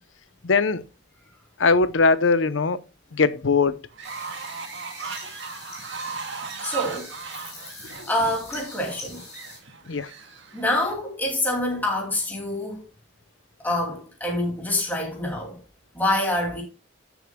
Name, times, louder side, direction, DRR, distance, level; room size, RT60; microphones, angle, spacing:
voice 1, 0.4-0.8 1.6-2.8 3.1-3.8 9.9-10.1, left 4 dB, 75° left, 0.7 m, -20 dB
Fowl, 3.9-10.9, right 5 dB, 65° right, 1.9 m, -37 dB
sound 1, 4.0-9.6, left 3 dB, 35° left, 6.3 m, -43 dB
voice 2, 6.6-7.1 7.8-9.2 10.5-12.8 13.6-15.6 15.9-16.6, left 1 dB, 10° left, 2.7 m, -26 dB
14.5 x 7.1 x 2.2 m
head